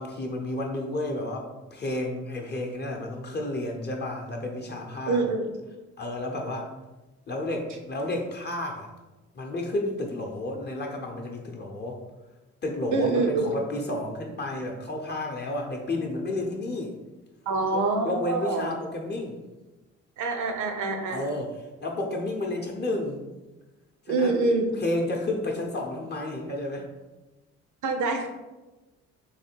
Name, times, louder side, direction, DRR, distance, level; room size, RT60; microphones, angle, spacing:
voice 1, 0.0-5.2 6.0-6.7 7.3-8.9 9.3-12.0 12.6-16.9 17.7-19.4 21.1-23.2 24.1-24.4 24.7-26.9, left 1 dB, 35° left, 1 dB, 0.7 m, -31 dB
voice 2, 5.1-5.5 12.9-13.4 17.5-18.7 20.2-21.2 24.1-24.7 27.8-28.3, right 3 dB, 75° right, 5 dB, 0.8 m, -25 dB
3.3 x 3.1 x 4.4 m, 1.1 s
cardioid pair, 90°, 30 cm